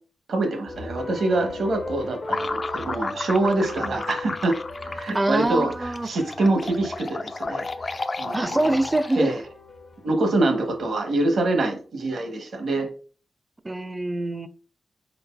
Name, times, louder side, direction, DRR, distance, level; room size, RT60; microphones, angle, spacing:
voice 1, 0.3-4.6 4.9-8.8 9.2-9.4 10.0-12.9, right 2 dB, 75° right, 6 dB, 0.8 m, -25 dB
sound 1, 0.7-10.9, left 2 dB, 60° left, 0.7 m, -38 dB
sound 2, 2.2-9.5, left 3 dB, 45° left, 0.3 m, -33 dB
voice 2, 5.1-6.1 8.3-9.3 13.6-14.5, right 2 dB, 25° right, 12 dB, 0.4 m, -24 dB
4.0 x 3.8 x 2.3 m, 0.40 s
cardioid pair, 60°, 0 cm